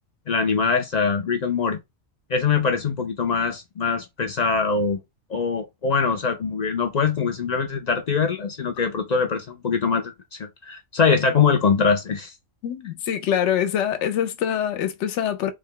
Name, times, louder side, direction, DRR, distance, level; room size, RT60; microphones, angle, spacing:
voice 1, 0.3-1.8 2.3-5.0 5.3-12.3, left 5 dB, 55° left, 0.4 m, -23 dB
voice 2, 12.6-15.5, left 9 dB, 70° left, 0.9 m, -24 dB
3.3 x 2.2 x 3.6 m
omnidirectional pair, 1.3 m